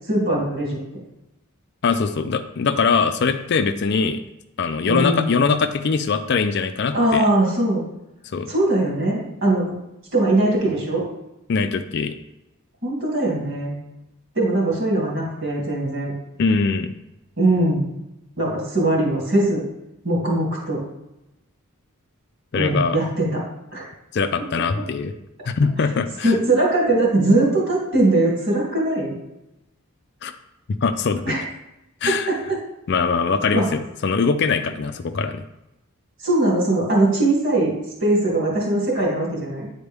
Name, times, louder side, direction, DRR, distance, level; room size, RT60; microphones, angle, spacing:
voice 1, 0.1-0.8 4.8-5.5 6.9-7.8 8.5-9.8 10.1-11.1 12.8-13.8 14.3-16.1 17.4-17.9 18.4-19.6 20.0-20.8 22.5-23.4 23.7-23.9 26.2-29.2 31.2-31.4 32.3-32.4 33.5-33.7 36.2-37.7 38.0-39.7, right 1 dB, 55° right, -4 dB, 2.7 m, -20 dB
voice 2, 1.8-4.2 4.6-7.2 8.3-8.5 11.5-12.2 16.4-16.9 22.5-23.0 24.1-25.1 25.5-26.3 30.2-30.3 30.8-31.4 32.0-32.3 32.9-35.4, left 5 dB, 50° left, 10 dB, 0.4 m, -22 dB
9.5 x 4.3 x 3.4 m, 0.91 s
head